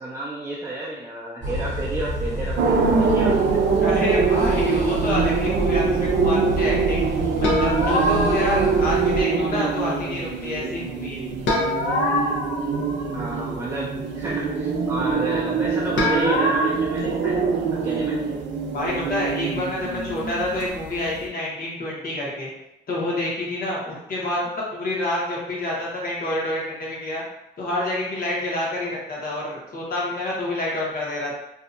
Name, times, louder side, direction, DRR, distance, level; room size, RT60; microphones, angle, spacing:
voice 1, 0.0-3.6 13.1-17.4 17.7-18.2, right 1 dB, 15° right, -7 dB, 0.4 m, -31 dB
sound 1, 1.4-9.2, right 1 dB, 40° right, 0.8 m, -29 dB
sound 2, 2.6-21.2, right 5 dB, 85° right, 0.4 m, -24 dB
voice 2, 3.8-7.0 7.4-11.2 18.7-22.5 22.9-27.2 27.6-31.3, left 1 dB, 50° left, -4 dB, 0.9 m, -27 dB
sound 3, 7.4-8.8 11.5-13.4 16.0-16.7, left 1 dB, 85° left, 0.6 m, -24 dB
2.6 x 2.1 x 2.5 m, 0.88 s
cardioid pair, 145°, 19 cm